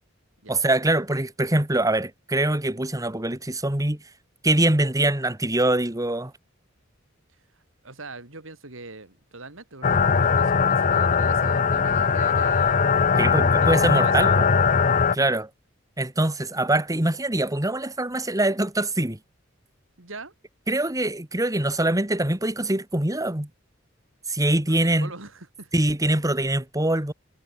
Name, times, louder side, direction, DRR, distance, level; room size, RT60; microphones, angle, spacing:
voice 1, 0.5-4.0 4.4-6.3 13.2-14.5 15.1-15.5 16.0-19.2 20.7-23.5 24.3-25.1 25.7-27.1, right 1 dB, 15° right, 2.3 m, -23 dB
voice 2, 7.8-13.0 13.6-14.4 15.2-15.4 20.0-20.3 24.7-25.7 26.3-26.6, right 3 dB, 75° right, 3.9 m, -41 dB
sound 1, 9.8-15.2, left 5 dB, 40° left, 0.7 m, -20 dB
head